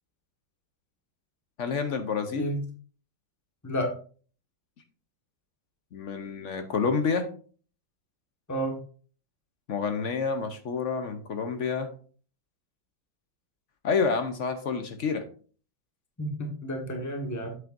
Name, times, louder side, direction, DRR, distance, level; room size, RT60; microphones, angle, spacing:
voice 1, 1.6-2.5 5.9-7.3 9.7-11.9 13.8-15.3, left 5 dB, 55° left, 8 dB, 0.9 m, -28 dB
voice 2, 8.5-8.8 16.2-17.6, equal, 10° left, 3 dB, 1.2 m, -31 dB
8.2 x 8.0 x 2.6 m, 0.42 s
omnidirectional pair, 2.0 m